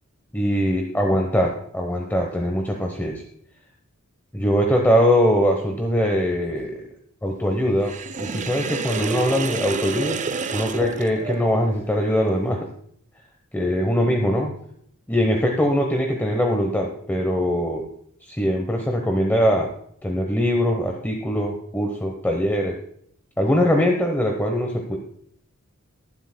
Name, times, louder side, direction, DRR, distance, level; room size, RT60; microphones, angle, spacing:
voice 1, 0.3-3.2 4.3-6.8 7.2-10.2 10.5-12.7 13.5-14.5 15.1-17.9 18.2-19.7 20.0-22.8 23.4-25.0, equal, 10° left, 2 dB, 1.0 m, -22 dB
Sink (filling or washing), 7.8-11.8, right 5 dB, 35° right, 0.5 m, -29 dB
22.0 x 7.9 x 2.2 m, 0.67 s
head